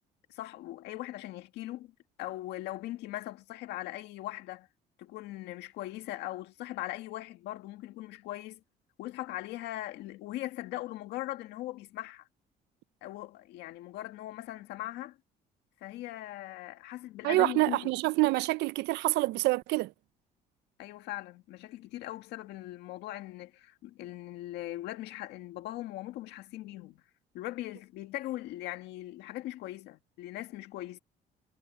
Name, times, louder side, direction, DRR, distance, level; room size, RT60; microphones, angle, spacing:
voice 1, 0.3-1.9 2.2-4.7 5.0-8.6 9.0-12.3 13.0-15.2 15.8-17.9 20.8-27.0 27.3-31.0, left 15 dB, 85° left, 1.9 m, -40 dB
voice 2, 17.2-19.9, right 21 dB, 85° right, 0.5 m, -27 dB
cardioid pair, 110°, 17 cm